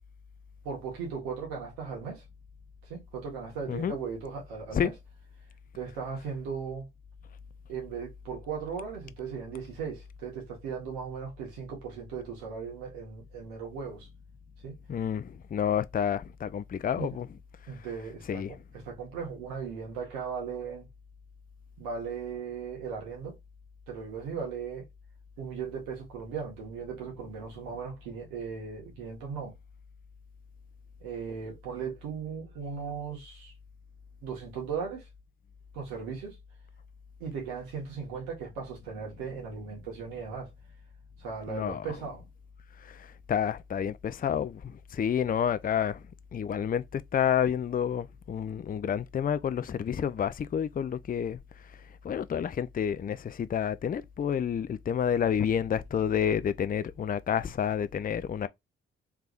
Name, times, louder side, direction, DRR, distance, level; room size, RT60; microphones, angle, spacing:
voice 1, 0.6-2.2 2.9-4.9 5.7-6.9 7.7-14.1 14.6-14.8 17.0-17.2 17.7-18.4 18.7-20.9 21.8-23.3 23.9-24.8 25.4-29.6 31.0-33.5 34.2-35.0 35.7-36.4 37.2-40.5 41.2-42.2, right 6 dB, 80° right, 1.6 m, -37 dB
voice 2, 14.9-17.3 18.3-18.5 41.5-41.9 42.8-46.0 46.3-51.4 52.0-58.5, left 8 dB, 25° left, 0.5 m, -29 dB
3.5 x 3.3 x 2.5 m
hypercardioid pair, 40°, 32 cm